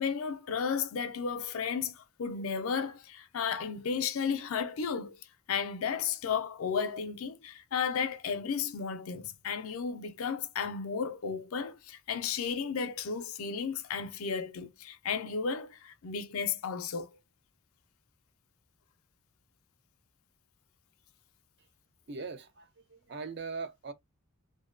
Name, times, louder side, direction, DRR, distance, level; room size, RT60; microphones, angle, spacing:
voice 1, 0.0-5.2 5.5-17.1, left 6 dB, 80° left, 0.4 m, -33 dB
voice 2, 22.1-23.9, right 4 dB, 50° right, 0.5 m, -40 dB
2.6 x 2.1 x 2.4 m
head